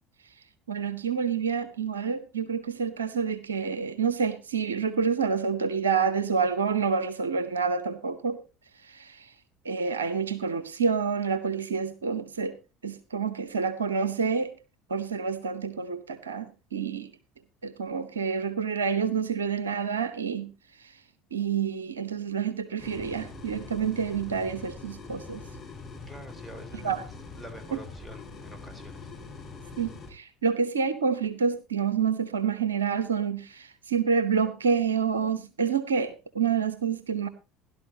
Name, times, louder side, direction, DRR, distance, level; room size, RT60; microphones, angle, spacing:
voice 1, 0.7-8.4 8.8-9.3 9.6-12.6 12.8-14.5 14.9-17.1 17.6-20.5 20.8-21.0 21.3-25.4 26.8-27.0 27.7-27.8 29.8-37.3, right 6 dB, 80° right, 0.8 m, -28 dB
sound 1, 22.8-30.1, left 4 dB, 40° left, 5.4 m, -43 dB
voice 2, 26.0-27.1 27.3-29.1, equal, 5° right, 3.9 m, -47 dB
16.5 x 12.0 x 2.8 m
figure-of-eight pair, 65°, 0 cm